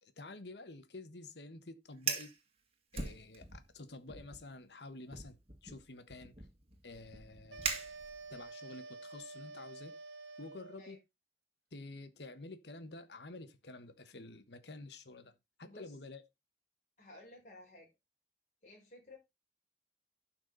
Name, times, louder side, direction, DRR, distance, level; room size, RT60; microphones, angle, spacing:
voice 1, 0.0-2.3 2.9-6.5 6.8-7.8 8.3-9.9 10.4-11.0 11.7-16.2, left 2 dB, 75° left, 1.3 m, -50 dB
Fire, 1.9-2.4 2.9-3.7 4.1-4.4 5.1-8.5, right 5 dB, 35° right, 2.0 m, -41 dB
sound 1, 7.5-11.0, right 3 dB, 90° right, 1.0 m, -49 dB
voice 2, 15.6-16.0 17.0-17.9 18.6-19.2, left 1 dB, 40° left, 5.2 m, -55 dB
11.5 x 6.1 x 4.0 m
head